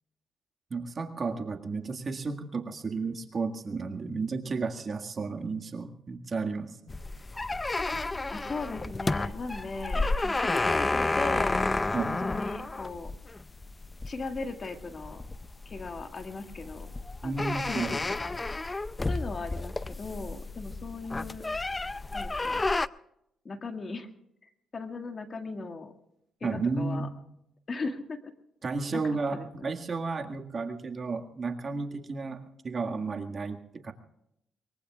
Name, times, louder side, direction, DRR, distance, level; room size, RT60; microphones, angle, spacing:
voice 1, 0.7-6.9 11.9-12.2 17.2-17.9 26.4-27.1 28.6-33.9, right 4 dB, 40° right, 4 dB, 1.8 m, -33 dB
sound 1, 6.9-22.9, left 2 dB, 20° left, 0.4 m, -31 dB
voice 2, 8.3-11.7 11.9-13.1 14.0-15.2 15.7-16.9 17.2-18.7 19.1-21.5 22.1-22.7 23.4-24.1 24.4-25.9 26.4-27.1 27.7-28.3 28.9-29.0 29.3-29.7, left 3 dB, 40° left, 6 dB, 1.9 m, -38 dB
23.5 x 22.0 x 2.4 m, 0.80 s
cardioid pair, 85°, 0 cm